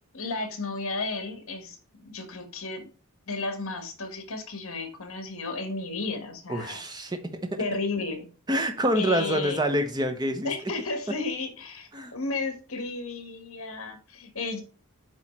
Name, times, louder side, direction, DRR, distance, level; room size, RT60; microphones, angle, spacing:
voice 1, 0.1-2.9 3.3-6.8 7.6-8.3 8.9-9.6 10.4-14.6, left 3 dB, 65° left, 1.3 m, -33 dB
voice 2, 6.5-7.6 8.5-10.5 11.9-12.1, equal, 20° right, 0.8 m, -27 dB
8.5 x 3.2 x 4.2 m
head